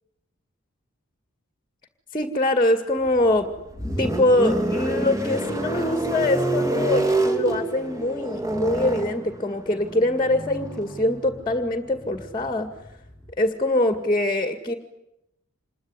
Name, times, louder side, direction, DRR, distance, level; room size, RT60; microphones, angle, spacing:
voice 1, 2.1-3.5 4.0-12.7 13.4-14.7, left 1 dB, 20° left, 8 dB, 2.0 m, -23 dB
sound 1, 3.0-13.3, right 2 dB, 15° right, 3.0 m, -28 dB
27.5 x 22.0 x 9.7 m, 0.85 s
head